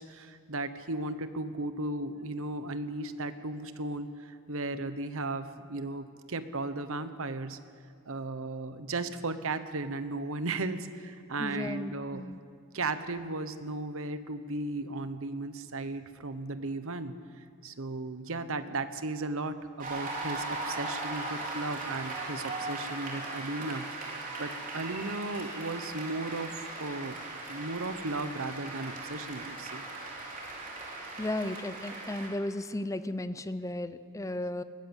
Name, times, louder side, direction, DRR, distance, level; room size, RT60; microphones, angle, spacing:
voice 1, 0.0-7.6 8.0-12.3 12.7-17.2 17.6-27.2 27.5-29.8, right 2 dB, 65° right, 11 dB, 1.1 m, -36 dB
voice 2, 11.4-12.4 31.2-34.6, left 1 dB, 15° left, 12 dB, 0.7 m, -35 dB
Cheering / Applause, 19.8-32.3, right 2 dB, 40° right, 4.0 m, -38 dB
20.0 x 17.0 x 8.1 m, 2.2 s
head